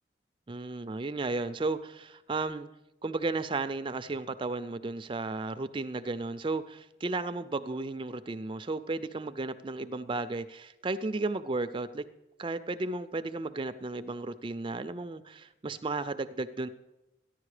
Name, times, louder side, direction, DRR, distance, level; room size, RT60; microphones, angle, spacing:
voice 1, 0.5-2.7 3.0-12.1 12.4-16.7, right 3 dB, 25° right, 11 dB, 0.4 m, -34 dB
14.5 x 10.5 x 4.9 m, 0.97 s
head